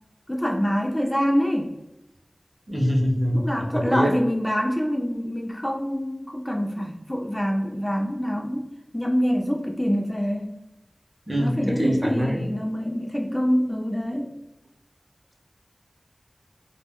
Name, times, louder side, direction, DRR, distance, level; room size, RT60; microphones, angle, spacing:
voice 1, 0.3-1.7 3.3-10.5 11.4-14.3, equal, 15° left, 0 dB, 0.4 m, -25 dB
voice 2, 2.7-3.5 3.7-4.1 11.3-12.5, equal, 30° right, 0 dB, 0.6 m, -24 dB
2.2 x 2.1 x 3.5 m, 0.93 s
wide cardioid pair, 60°, 0 cm